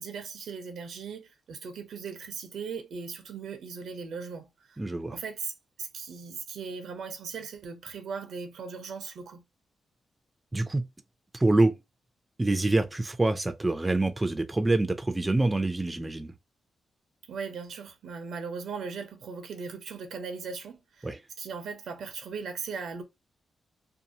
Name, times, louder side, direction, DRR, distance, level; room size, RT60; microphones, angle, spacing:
voice 1, 0.0-4.8 5.1-5.5 5.8-9.4 17.3-23.0, right 5 dB, 85° right, 0.7 m, -38 dB
voice 2, 4.8-5.2 10.5-10.9 11.3-11.7 12.4-16.3 21.0-21.2, right 2 dB, 15° right, 0.4 m, -26 dB
2.7 x 2.4 x 2.7 m
cardioid pair, 110°, 0 cm